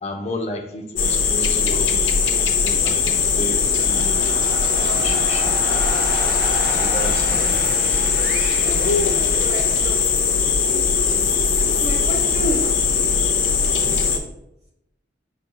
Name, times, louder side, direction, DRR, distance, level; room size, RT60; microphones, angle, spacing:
voice 1, 0.0-2.0 2.3-4.2 4.8-5.5 6.4-8.1 8.7-9.2, left 1 dB, 35° left, 1 dB, 0.7 m, -33 dB
sound 1, 1.0-14.2, left 5 dB, 80° left, 0.6 m, -20 dB
sound 2, 3.4-10.3, right 2 dB, 55° right, 0.7 m, -32 dB
voice 2, 9.4-10.0 10.6-10.8 11.8-13.3, right 1 dB, 35° right, -2 dB, 1.3 m, -30 dB
5.0 x 4.2 x 2.3 m, 0.82 s
head